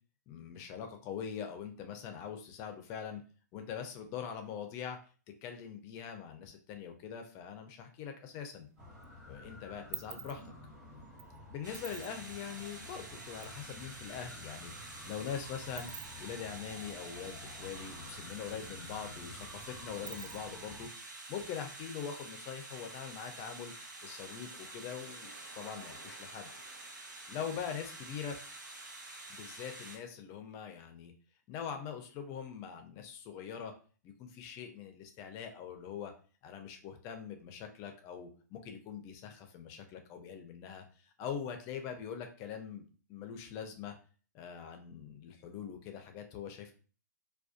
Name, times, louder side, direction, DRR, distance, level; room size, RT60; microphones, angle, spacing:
voice 1, 0.3-3.2 3.5-5.0 5.4-8.7 9.3-10.5 11.5-14.7 15.1-15.9 16.2-20.9 21.3-23.7 24.0-26.5 27.3-28.4 29.3-31.1 31.5-33.7 34.0-36.1 36.4-42.8 43.1-43.9 44.3-46.7, left 7 dB, 30° left, 6 dB, 0.5 m, -43 dB
sound 1, 8.3-9.0 9.4-13.6 13.9-14.0 14.2-18.0 18.3-18.4 18.7-20.7, right 9 dB, 50° right, 0.4 m, -49 dB
sound 2, 8.8-20.9, left 2 dB, ahead, 0.9 m, -51 dB
sound 3, 11.6-30.0, right 2 dB, 90° right, 0.6 m, -48 dB
2.4 x 2.2 x 2.4 m, 0.39 s
hypercardioid pair, 130°, 10 cm